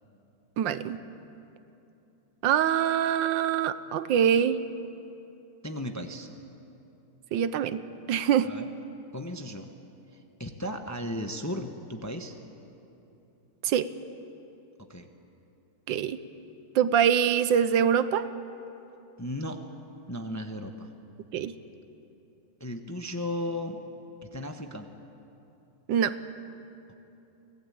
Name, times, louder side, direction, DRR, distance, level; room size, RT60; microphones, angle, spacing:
voice 1, 0.6-1.0 2.4-4.6 7.3-7.8 8.1-8.5 13.6-13.9 15.9-16.2 16.7-18.3 21.3-21.5 25.9-26.1, right 9 dB, 85° right, 13 dB, 1.5 m, -24 dB
voice 2, 5.6-6.3 8.4-8.7 9.1-9.7 10.1-12.4 14.9-15.1 19.2-19.6 20.1-20.9 22.6-23.8 24.2-24.9, left 1 dB, 15° left, 5 dB, 0.8 m, -35 dB
25.0 x 18.0 x 8.7 m, 2.9 s
omnidirectional pair, 2.0 m